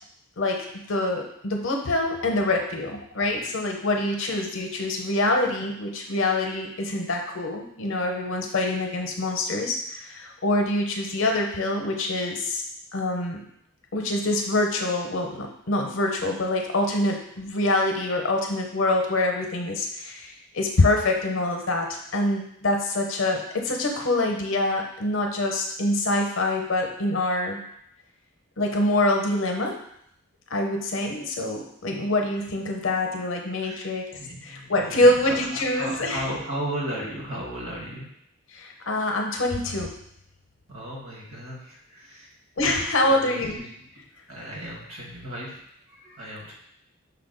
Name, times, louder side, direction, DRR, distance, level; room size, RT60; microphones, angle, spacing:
voice 1, 0.4-12.6 12.9-13.4 13.9-27.6 28.6-29.8 30.5-34.1 34.4-36.2 38.5-39.9 42.6-43.6, left 2 dB, 60° left, 2 dB, 0.7 m, -25 dB
voice 2, 33.6-38.1 40.7-42.3 43.1-45.6 45.9-46.5, right 1 dB, 70° right, -3 dB, 1.5 m, -36 dB
5.7 x 2.2 x 3.8 m, 0.72 s
head